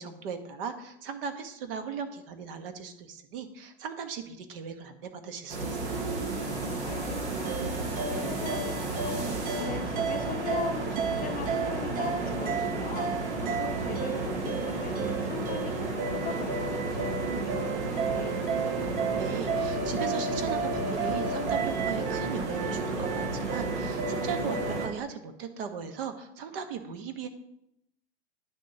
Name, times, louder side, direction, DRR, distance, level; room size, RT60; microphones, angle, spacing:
voice 1, 0.0-6.0 19.2-27.3, right 6 dB, 55° right, 8 dB, 1.1 m, -38 dB
sound 1, 5.5-24.9, right 2 dB, 75° right, 2.0 m, -32 dB
voice 2, 6.8-9.2 9.6-13.3 13.6-18.4, left 8 dB, 25° left, 6 dB, 0.7 m, -40 dB
sound 2, 7.3-25.0, right 5 dB, 25° right, 0.6 m, -34 dB
10.5 x 6.4 x 2.8 m, 0.82 s
hypercardioid pair, 105°, 33 cm